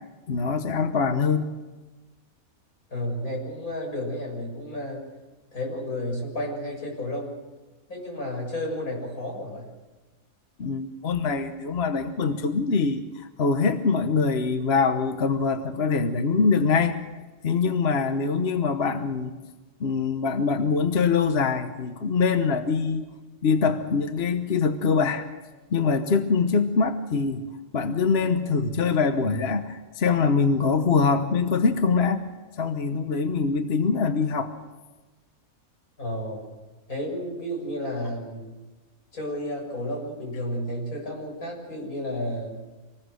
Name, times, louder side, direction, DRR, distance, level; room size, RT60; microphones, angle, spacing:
voice 1, 0.3-1.5 10.6-17.0 17.4-19.4 19.8-23.0 23.4-25.3 25.7-27.4 27.7-32.2 32.6-34.5, left 5 dB, 50° left, 7 dB, 1.3 m, -23 dB
voice 2, 2.9-5.0 5.5-7.3 7.9-9.7 36.0-36.4 36.9-38.5 39.1-42.6, left 1 dB, 85° left, 0 dB, 7.3 m, -32 dB
26.0 x 20.0 x 6.4 m, 1.2 s
omnidirectional pair, 1.5 m